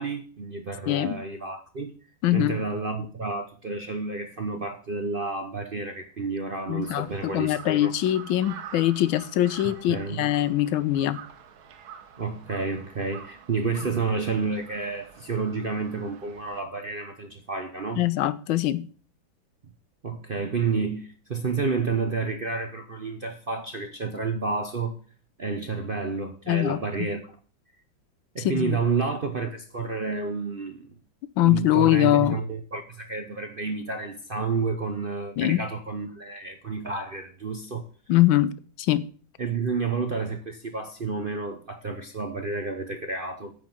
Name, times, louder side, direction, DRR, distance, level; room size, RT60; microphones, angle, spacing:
voice 1, 0.0-1.9 2.3-7.9 9.6-10.3 12.2-18.0 20.0-25.0 25.4-27.2 28.3-30.8 31.4-37.9 39.4-43.5, right 4 dB, 50° right, 0.6 m, -30 dB
voice 2, 0.9-1.2 2.2-2.6 6.7-11.2 18.0-18.8 26.5-26.8 28.4-28.8 31.4-32.4 35.4-35.7 38.1-38.5 38.8-39.0, left 14 dB, 85° left, 1.4 m, -23 dB
Crow, 6.8-16.6, right 8 dB, 90° right, 1.8 m, -46 dB
9.5 x 5.0 x 7.3 m
omnidirectional pair, 2.1 m